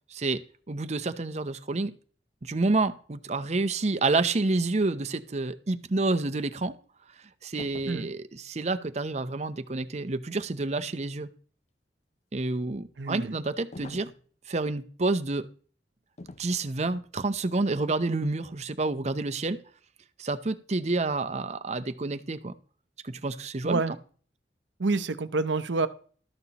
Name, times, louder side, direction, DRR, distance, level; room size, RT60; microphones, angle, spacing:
voice 1, 0.1-0.4 0.7-1.9 2.4-6.7 7.4-11.3 12.3-14.1 14.5-15.5 16.4-19.6 20.2-22.5 23.0-24.0, right 3 dB, 40° right, 11 dB, 0.7 m, -29 dB
sound 1, 7.6-8.2 13.7-14.2 16.2-16.5 16.9-17.1, left 2 dB, 40° left, 0.5 m, -44 dB
voice 2, 13.0-13.4 23.6-23.9 24.8-25.9, right 3 dB, 85° right, 13 dB, 0.7 m, -27 dB
13.0 x 11.0 x 3.0 m, 0.44 s
head